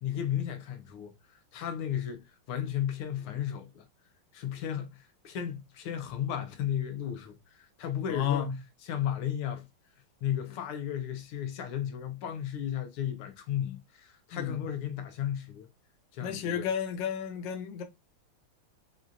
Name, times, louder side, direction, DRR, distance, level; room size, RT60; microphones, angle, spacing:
voice 1, 0.0-3.9 4.3-8.5 8.8-9.7 10.2-15.7 16.1-16.7, left 10 dB, 90° left, 1.7 m, -34 dB
voice 2, 8.1-8.5 14.3-14.6 16.2-17.8, left 8 dB, 65° left, 1.4 m, -32 dB
5.9 x 2.6 x 2.4 m
omnidirectional pair, 2.3 m